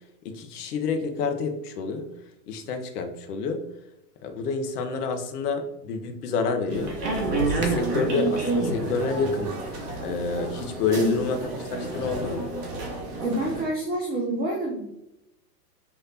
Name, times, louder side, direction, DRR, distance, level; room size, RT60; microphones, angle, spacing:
voice 1, 0.2-2.1 2.5-3.6 4.2-7.0 7.4-9.5 10.0-12.5, left 4 dB, 65° left, 6 dB, 1.0 m, -28 dB
sound 1, 6.7-13.6, right 2 dB, 65° right, 1.6 m, -29 dB
voice 2, 13.2-14.9, right 1 dB, 20° right, 0 dB, 0.8 m, -27 dB
5.8 x 3.2 x 2.8 m, 0.85 s
hypercardioid pair, 105°, 50 cm